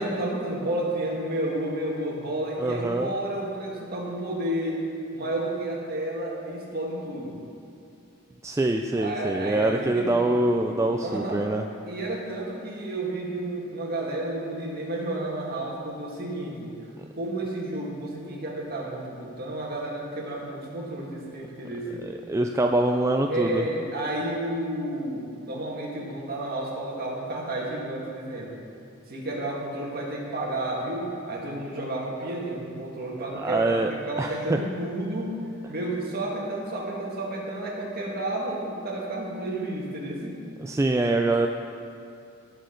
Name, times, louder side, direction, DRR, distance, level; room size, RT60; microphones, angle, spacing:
voice 1, 0.0-4.8 5.1-7.4 8.9-10.3 10.7-11.4 11.9-16.8 17.2-22.1 23.3-28.5 29.1-40.5, right 1 dB, 45° right, -3 dB, 1.9 m, -31 dB
voice 2, 2.6-3.1 8.4-11.6 22.0-23.6 33.3-33.9 34.2-34.6 40.6-41.5, right 2 dB, 15° right, 3 dB, 0.3 m, -24 dB
17.5 x 6.3 x 3.9 m, 2.5 s
head